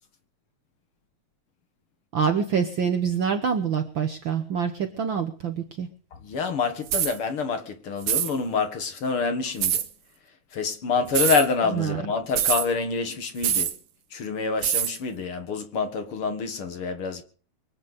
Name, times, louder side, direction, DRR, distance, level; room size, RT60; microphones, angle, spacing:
voice 1, 2.1-5.9 11.7-12.0, right 7 dB, 60° right, 1.4 m, -26 dB
voice 2, 6.1-9.8 10.5-13.7 14.1-17.2, left 4 dB, 55° left, 2.2 m, -27 dB
sound 1, 6.9-7.2 8.0-8.3 9.6-9.9 11.1-11.5 12.4-12.7 13.4-13.8 14.6-14.9, right 10 dB, 85° right, 2.6 m, -24 dB
24.0 x 8.8 x 5.1 m
omnidirectional pair, 3.3 m